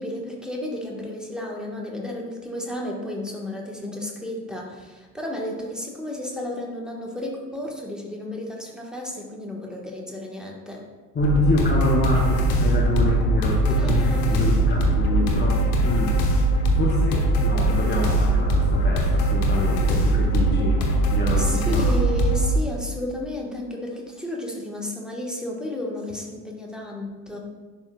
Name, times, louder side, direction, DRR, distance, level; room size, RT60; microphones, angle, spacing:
voice 1, 0.0-10.8 13.8-14.5 21.3-27.4, left 1 dB, ahead, -2 dB, 1.2 m, -32 dB
voice 2, 11.1-16.4 16.7-20.8 21.1-21.9, left 2 dB, 20° left, -3 dB, 0.9 m, -26 dB
sound 1, 11.2-22.6, right 1 dB, 65° left, 1.2 m, -21 dB
10.5 x 4.0 x 2.2 m, 1.3 s
figure-of-eight pair, 65°, 50 cm